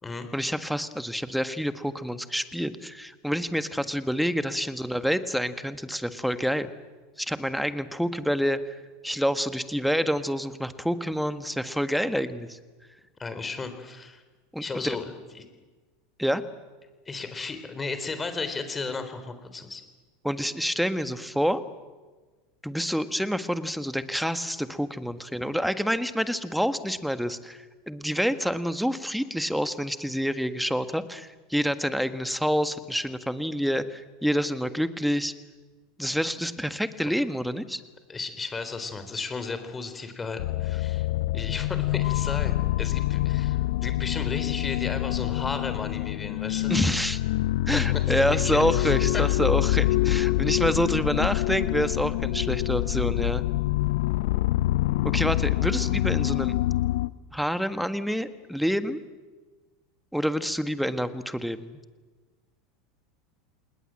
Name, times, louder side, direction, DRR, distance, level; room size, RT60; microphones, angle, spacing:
voice 1, 0.3-6.7 7.2-8.8 9.0-12.6 14.5-15.0 16.2-16.4 20.2-21.6 22.6-35.3 36.0-37.8 46.7-47.2 47.7-53.4 55.0-56.6 57.3-59.0 60.1-61.8, equal, ahead, 11 dB, 1.6 m, -27 dB
voice 2, 13.2-14.2 14.6-15.1 17.1-19.8 38.1-41.1 41.3-46.7 47.7-47.8 48.1-49.2, left 4 dB, 20° left, 9 dB, 3.9 m, -34 dB
sound 1, 40.4-57.1, left 17 dB, 70° left, 0.7 m, -26 dB
28.0 x 20.5 x 7.7 m, 1.3 s
hypercardioid pair, 85°, 0 cm